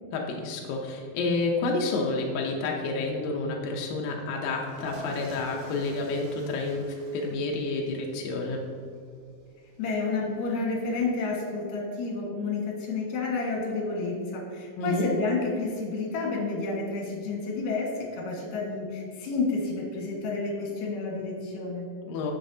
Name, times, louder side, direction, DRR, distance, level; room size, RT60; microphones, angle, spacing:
voice 1, 0.1-8.6 14.8-15.1 22.1-22.3, left 3 dB, 80° left, 0 dB, 2.0 m, -29 dB
sound 1, 4.5-11.3, right 1 dB, 70° right, 2.3 m, -48 dB
voice 2, 9.8-21.9, left 3 dB, 60° left, -2 dB, 2.8 m, -30 dB
9.3 x 7.5 x 2.7 m, 2.3 s
omnidirectional pair, 4.9 m